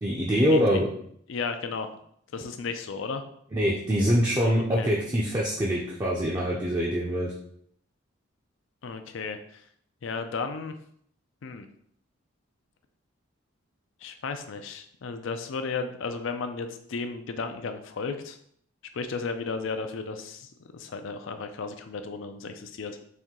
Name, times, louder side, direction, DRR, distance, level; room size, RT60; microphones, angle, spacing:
voice 1, 0.0-0.9 3.5-7.3, equal, 20° right, -5 dB, 0.5 m, -24 dB
voice 2, 1.3-1.9 2.3-3.2 4.6-4.9 8.8-9.6 10.0-10.7 11.4-11.7 14.0-18.4 18.9-23.0, left 4 dB, 70° left, 8 dB, 0.4 m, -34 dB
4.4 x 2.6 x 3.7 m, 0.67 s
head